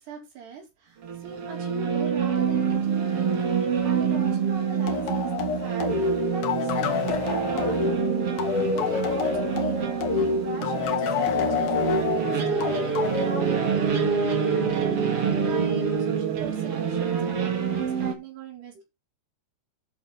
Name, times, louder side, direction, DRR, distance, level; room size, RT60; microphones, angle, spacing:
voice 1, 0.0-7.0 7.3-9.8 10.1-13.0 13.2-13.8 14.4-18.8, right 6 dB, 70° right, 1 dB, 6.5 m, -41 dB
sound 1, 1.0-18.1, right 6 dB, 45° right, 2.4 m, -26 dB
sound 2, 4.9-14.1, left 5 dB, 60° left, 3.5 m, -27 dB
11.0 x 7.3 x 4.3 m, 0.22 s
omnidirectional pair, 5.0 m